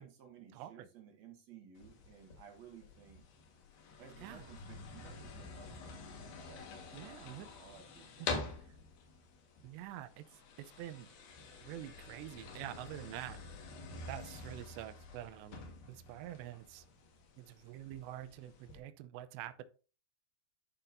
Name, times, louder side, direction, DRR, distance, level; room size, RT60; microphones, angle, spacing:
voice 1, 0.0-3.2 4.0-8.3, right 7 dB, 60° right, 2 dB, 2.0 m, -57 dB
voice 2, 0.5-0.9 4.2-4.5 6.9-7.5 8.2-8.7 9.6-11.1 11.6-13.4 14.1-15.6 15.9-16.9 17.4-19.6, right 13 dB, 90° right, 12 dB, 2.9 m, -47 dB
sound 1, 1.8-18.8, left 4 dB, 65° left, 3.1 m, -48 dB
11.5 x 5.8 x 2.6 m, 0.36 s
omnidirectional pair, 4.9 m